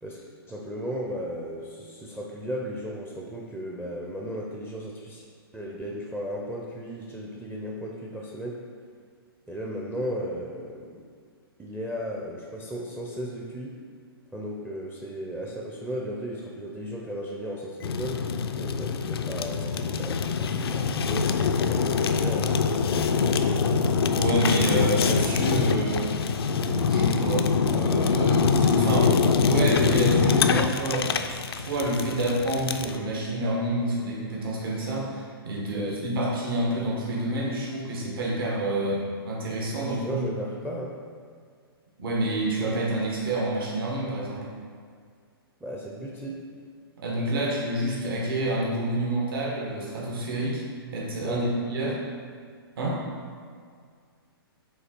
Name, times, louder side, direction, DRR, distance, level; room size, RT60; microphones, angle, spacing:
voice 1, 0.0-5.2 5.5-8.6 9.5-11.0 11.6-13.8 14.3-18.2 18.6-22.7 22.9-23.7 35.7-36.0 39.8-41.0 45.6-46.4 51.2-51.5 51.8-52.0, equal, 5° right, -2 dB, 0.5 m, -35 dB
Fire, 17.8-33.0, left 5 dB, 75° left, 0.4 m, -24 dB
voice 2, 24.1-26.1 26.9-40.2 42.0-44.5 47.0-50.6 50.9-52.0 52.8-53.1, right 1 dB, 65° right, -4 dB, 1.4 m, -28 dB
5.6 x 3.8 x 4.4 m, 2.1 s
hypercardioid pair, 130°, 13 cm